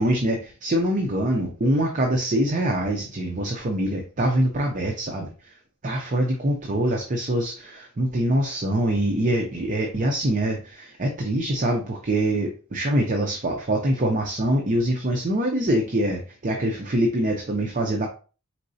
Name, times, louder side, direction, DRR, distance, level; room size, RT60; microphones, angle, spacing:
voice 1, 0.0-5.5 5.8-18.1, right 1 dB, 35° right, 1 dB, 0.6 m, -24 dB
4.4 x 3.8 x 2.7 m, 0.37 s
head